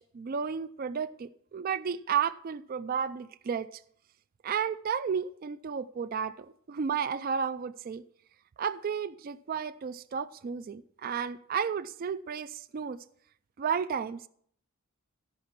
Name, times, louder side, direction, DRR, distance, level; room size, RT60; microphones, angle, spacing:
voice 1, 0.0-3.8 4.4-8.0 8.6-13.0 13.6-14.3, right 7 dB, 40° right, 0.3 m, -33 dB
14.0 x 5.8 x 5.8 m
head